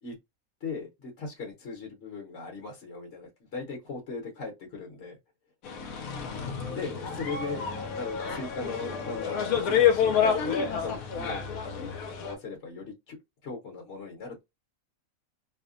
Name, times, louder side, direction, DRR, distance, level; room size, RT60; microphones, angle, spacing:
voice 1, 0.6-5.2 6.7-7.7 8.0-13.2 13.4-14.4, left 4 dB, 55° left, 1.1 m, -39 dB
sound 1, 5.6-12.3, left 7 dB, 80° left, 1.0 m, -28 dB
2.7 x 2.1 x 2.4 m
omnidirectional pair, 1.5 m